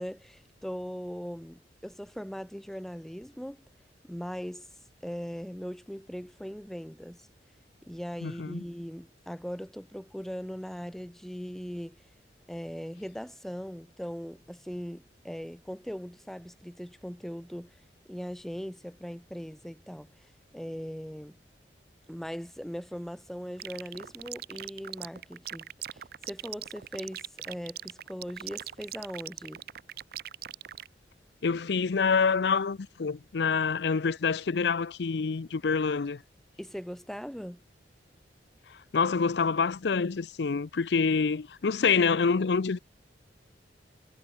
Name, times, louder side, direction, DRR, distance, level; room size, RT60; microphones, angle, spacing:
voice 1, 0.0-3.6 4.0-4.7 5.0-7.3 7.8-12.0 12.5-17.8 18.1-21.4 22.1-29.6 36.6-37.6, equal, ahead, 0.5 m, -40 dB
voice 2, 8.2-8.6 31.4-36.2 38.9-42.8, left 5 dB, 65° left, 0.5 m, -26 dB
sound 1, 23.6-30.9, right 12 dB, 55° right, 0.5 m, -40 dB
head